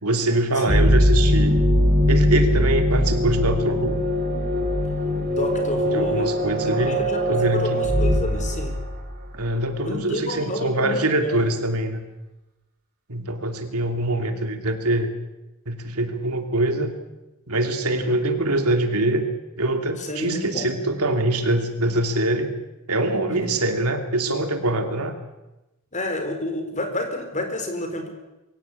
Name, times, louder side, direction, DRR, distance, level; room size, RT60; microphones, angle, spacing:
voice 1, 0.0-1.6 2.1-4.0 5.9-7.0 7.3-8.0 9.3-12.0 13.1-15.1 15.7-16.9 17.5-19.3 19.6-22.5 22.9-25.1, right 1 dB, 85° right, 6 dB, 2.9 m, -24 dB
voice 2, 0.6-0.9 5.3-6.3 6.7-8.8 9.8-11.4 17.8-18.1 20.0-20.7 23.3-23.5 25.9-28.1, left 1 dB, 35° left, 5 dB, 4.4 m, -30 dB
sound 1, 0.7-9.3, equal, 40° right, 4.2 m, -21 dB
23.5 x 17.0 x 8.4 m, 1.0 s
head